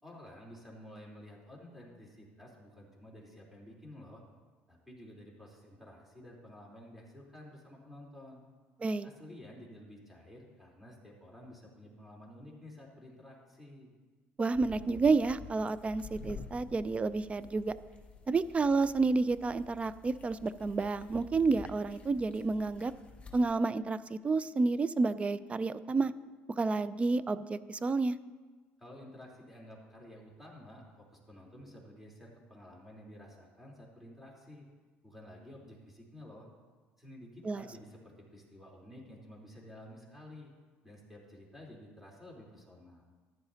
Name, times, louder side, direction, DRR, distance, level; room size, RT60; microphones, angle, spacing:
voice 1, 0.0-4.2 4.7-8.4 9.0-13.9 28.8-30.8 31.1-34.7 35.0-36.5 37.0-40.5 40.8-43.1, left 1 dB, 5° right, -3 dB, 3.6 m, -52 dB
voice 2, 14.4-17.7 18.3-22.9 23.3-26.1 26.6-28.2 37.4-37.6, right 3 dB, 25° right, 16 dB, 0.4 m, -30 dB
sound 1, 14.5-23.5, left 4 dB, 25° left, 1.6 m, -51 dB
14.0 x 11.0 x 2.8 m, 1.4 s
supercardioid pair, 85°, 5 cm